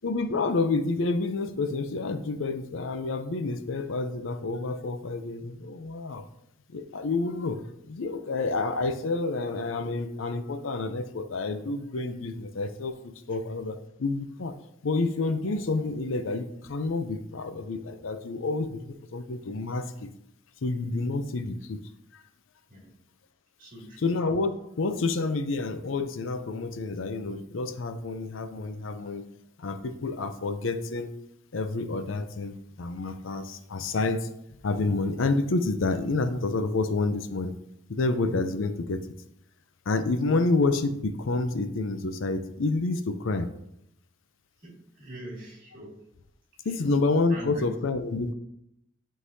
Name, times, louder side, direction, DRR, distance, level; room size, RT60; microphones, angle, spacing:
voice 1, 0.0-6.2 6.7-14.5 14.8-20.1 20.6-21.8 22.1-22.2 24.0-29.3 29.6-31.1 31.5-34.3 34.6-37.6 37.9-39.0 39.9-43.5 46.6-48.3, left 3 dB, 80° left, 9 dB, 0.6 m, -29 dB
voice 2, 23.6-24.1 44.6-46.0 46.6-46.9 47.3-47.6, right 1 dB, 45° right, -3 dB, 2.3 m, -44 dB
11.0 x 3.9 x 2.7 m, 0.78 s
head